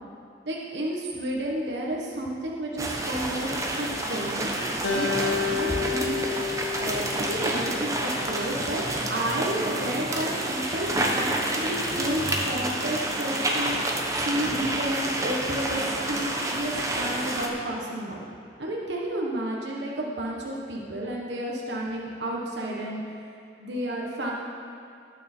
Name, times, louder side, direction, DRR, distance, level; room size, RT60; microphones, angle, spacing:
voice 1, 0.4-4.5 4.9-6.3 6.7-8.8 9.1-18.3 18.6-23.3 23.6-24.3, right 1 dB, 70° right, -2 dB, 1.3 m, -31 dB
sound 1, 2.8-17.5, right 1 dB, 20° right, 1.0 m, -29 dB
Acoustic guitar, 4.8-8.2, left 5 dB, 75° left, 1.4 m, -30 dB
18.5 x 6.4 x 4.5 m, 2.5 s
head